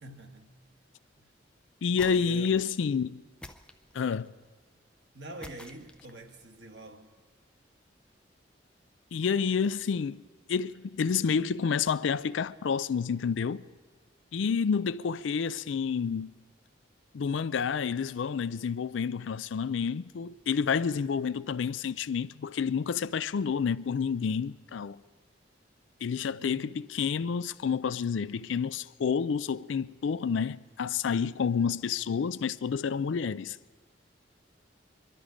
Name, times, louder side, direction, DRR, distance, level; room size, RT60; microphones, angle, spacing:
voice 1, 0.0-0.5 1.2-1.3 2.0-2.6 5.1-7.1 26.2-26.6, right 1 dB, 60° right, 1.4 m, -46 dB
voice 2, 1.8-3.2 3.9-4.3 9.1-10.2 10.5-13.6 14.3-16.3 17.1-25.0 26.0-33.6, left 6 dB, 80° left, 0.4 m, -29 dB
sound 1, 1.9-2.7 3.4-4.3 5.4-6.3, left 1 dB, 5° left, 0.4 m, -48 dB
22.5 x 12.5 x 5.0 m
head